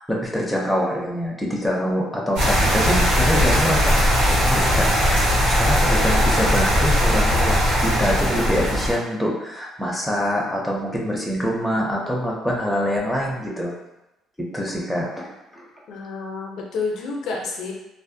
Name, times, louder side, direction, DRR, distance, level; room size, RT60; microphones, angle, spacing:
voice 1, 0.0-4.9 5.3-13.7 14.4-15.6, equal, ahead, -4 dB, 0.4 m, -25 dB
sound 1, 2.4-8.9, equal, 85° right, 1.2 m, -19 dB
voice 2, 15.9-17.7, left 4 dB, 65° left, -1 dB, 0.4 m, -29 dB
2.4 x 2.0 x 2.6 m, 0.94 s
cardioid pair, 145°, 0 cm